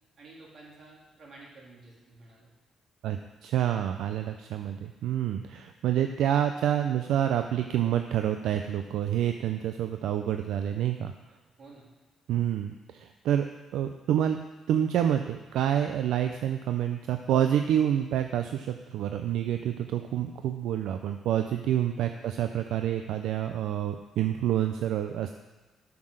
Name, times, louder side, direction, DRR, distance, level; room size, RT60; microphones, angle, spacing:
voice 1, 0.2-2.5 11.6-11.8 22.0-22.2, right 2 dB, 55° right, -4 dB, 3.1 m, -51 dB
voice 2, 3.0-11.1 12.3-13.5 13.7-14.4 14.7-25.3, right 10 dB, 85° right, 6 dB, 0.4 m, -28 dB
7.3 x 6.0 x 6.4 m, 1.2 s
cardioid pair, 90°, 0 cm